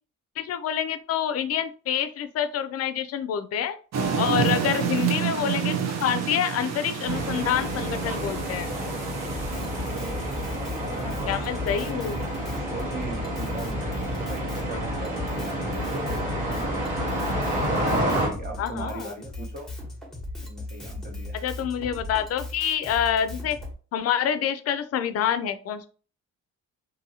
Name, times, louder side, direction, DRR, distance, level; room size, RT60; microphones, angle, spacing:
voice 1, 0.4-3.8 4.2-8.7 11.3-12.3 18.6-19.1 21.3-23.6 23.9-25.9, left 9 dB, 55° left, 11 dB, 0.4 m, -27 dB
sound 1, 3.9-10.6, right 7 dB, 60° right, 0.7 m, -29 dB
voice 2, 4.4-4.8 9.5-11.3 12.5-16.8 17.7-19.7 20.4-21.4, right 2 dB, 30° right, 0 dB, 1.0 m, -40 dB
sound 2, 7.0-18.3, equal, 80° right, 1.2 m, -29 dB
Drum kit, 9.3-23.7, left 2 dB, ahead, 1.1 m, -37 dB
2.6 x 2.6 x 2.7 m, 0.38 s
cardioid pair, 90°, 30 cm